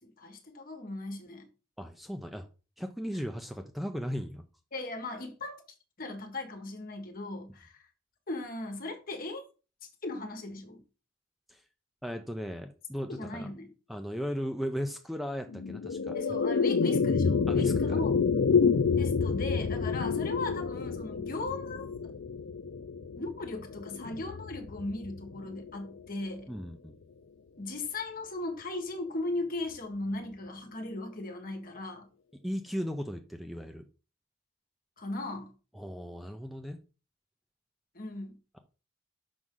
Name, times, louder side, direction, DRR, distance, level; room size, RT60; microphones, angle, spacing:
voice 1, 0.0-1.5 4.7-5.6 6.0-7.9 8.3-9.4 10.0-10.8 13.1-13.7 16.1-18.2 19.0-22.1 23.1-26.5 27.6-32.1 35.0-35.5 37.9-38.4, left 2 dB, 45° left, 1.4 m, -38 dB
voice 2, 1.8-2.5 2.8-4.4 11.5-11.6 12.0-13.5 13.9-16.4 17.5-18.0 18.3-18.4 26.5-26.9 32.4-33.8 35.7-36.8, equal, ahead, 0.5 m, -36 dB
sound 1, 15.5-26.0, left 5 dB, 80° left, 0.5 m, -29 dB
6.2 x 5.3 x 3.7 m
head